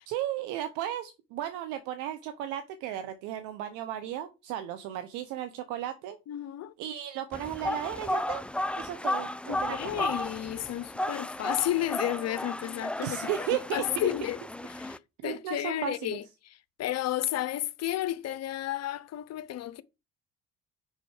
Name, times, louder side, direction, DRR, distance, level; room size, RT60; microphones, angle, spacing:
voice 1, 0.1-6.2 6.8-8.4 8.8-10.0 13.0-14.1 15.2-16.2, right 11 dB, 85° right, 1.0 m, -35 dB
voice 2, 6.3-6.7 9.5-14.4 14.7-19.8, left 13 dB, 60° left, 0.7 m, -32 dB
sound 1, 7.3-15.0, left 1 dB, 5° left, 0.5 m, -34 dB
6.7 x 5.7 x 4.8 m
supercardioid pair, 70°, 30 cm